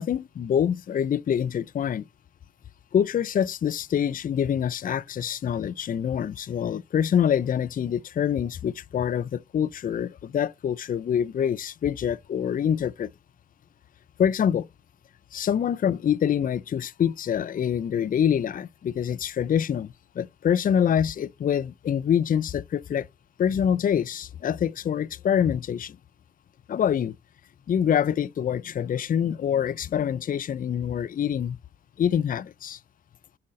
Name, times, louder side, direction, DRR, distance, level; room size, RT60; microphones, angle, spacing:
voice 1, 0.0-2.0 2.9-13.1 14.2-14.7 15.3-23.1 23.4-26.0 26.7-27.1 27.7-31.6 32.0-32.8, left 8 dB, 40° left, 0.5 m, -25 dB
6.3 x 5.8 x 3.7 m
supercardioid pair, 55°, 21 cm